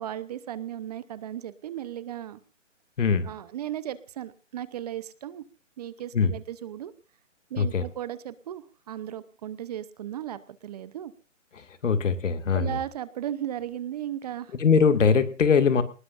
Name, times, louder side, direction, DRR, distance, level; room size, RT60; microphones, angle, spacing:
voice 1, 0.0-2.4 3.2-5.4 5.8-6.9 7.5-11.1 12.5-14.5, right 11 dB, 30° right, 15 dB, 0.9 m, -36 dB
voice 2, 3.0-3.3 6.1-6.3 7.6-7.8 11.6-12.8 14.6-15.8, left 5 dB, 75° left, 9 dB, 2.2 m, -22 dB
25.5 x 19.5 x 2.6 m, 0.33 s
hypercardioid pair, 155°, 38 cm